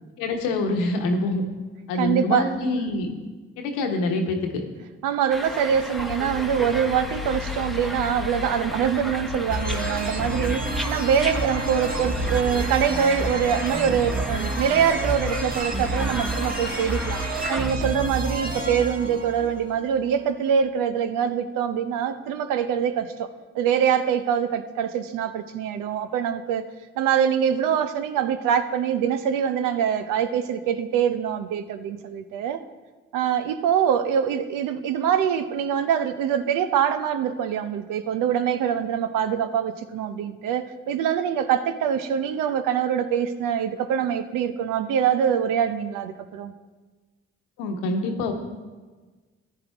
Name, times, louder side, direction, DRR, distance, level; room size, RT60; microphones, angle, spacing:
voice 1, 0.2-1.4 1.9-3.1 3.6-4.6 47.6-48.3, left 2 dB, 85° left, 3 dB, 1.2 m, -25 dB
voice 2, 1.9-2.5 5.0-17.2 17.5-23.3 23.5-26.6 27.0-32.6 33.1-46.5, right 8 dB, 75° right, 10 dB, 0.7 m, -24 dB
sound 1, 5.3-17.7, equal, ahead, 0.9 m, -35 dB
sound 2, 6.0-12.9, left 11 dB, 65° left, 0.5 m, -37 dB
sound 3, 9.5-20.1, right 2 dB, 25° right, 1.5 m, -29 dB
14.0 x 9.3 x 3.5 m, 1.3 s
hypercardioid pair, 40°, 32 cm